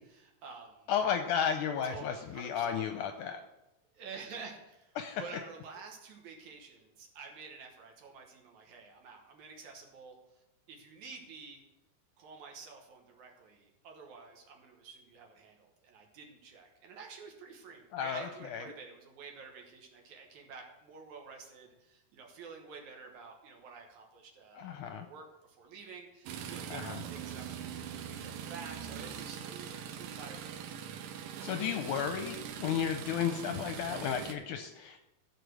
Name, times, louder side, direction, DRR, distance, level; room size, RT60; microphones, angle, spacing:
voice 1, 0.1-0.9 1.7-2.8 3.9-10.2 10.7-11.6 12.2-25.2 25.6-31.0, right 5 dB, 65° right, 1 dB, 2.3 m, -50 dB
voice 2, 0.9-3.4 5.0-5.2 17.9-18.6 24.6-25.1 26.7-27.0 31.4-35.0, left 8 dB, 75° left, 7 dB, 1.9 m, -33 dB
sound 1, 26.3-34.4, right 8 dB, 85° right, 2.5 m, -42 dB
13.0 x 5.0 x 6.2 m, 0.93 s
omnidirectional pair, 4.0 m